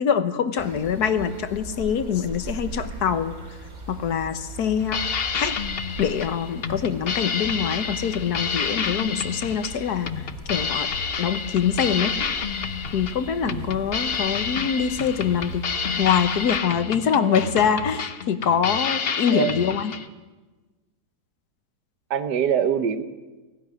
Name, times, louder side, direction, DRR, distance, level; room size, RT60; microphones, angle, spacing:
voice 1, 0.0-3.3 3.9-5.5 6.0-10.9 11.2-12.1 12.9-15.7 16.0-19.9, left 7 dB, 70° left, 11 dB, 1.6 m, -24 dB
sound 1, 0.6-16.6, right 2 dB, 55° right, 3.3 m, -39 dB
sound 2, 4.8-20.1, left 6 dB, 45° left, 0.9 m, -29 dB
voice 2, 22.1-23.0, right 8 dB, 85° right, 11 dB, 1.7 m, -24 dB
17.5 x 16.0 x 9.7 m, 1.2 s
omnidirectional pair, 1.8 m